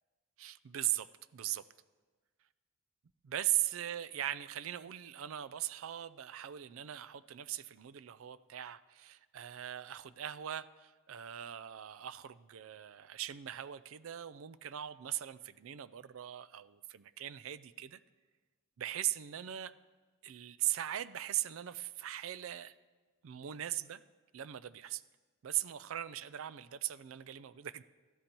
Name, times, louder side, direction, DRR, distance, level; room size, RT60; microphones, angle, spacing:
voice 1, 0.4-1.6 3.2-18.0 18.8-19.7 20.2-22.7 23.2-24.0 24.3-25.0 25.4-27.8, right 12 dB, 70° right, 15 dB, 0.4 m, -39 dB
16.0 x 13.0 x 3.0 m, 1.3 s
head